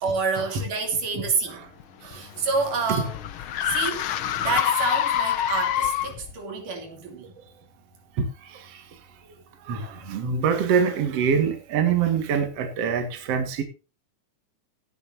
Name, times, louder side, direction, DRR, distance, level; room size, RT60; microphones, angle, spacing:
voice 1, 0.0-1.6 2.0-3.2 3.6-7.3, right 4 dB, 85° right, 4.7 m, -28 dB
sound 1, 1.8-6.3, left 10 dB, 75° left, 1.2 m, -26 dB
voice 2, 8.2-8.8 9.6-13.6, right 6 dB, 55° right, 2.7 m, -25 dB
18.0 x 10.0 x 2.8 m
omnidirectional pair, 3.6 m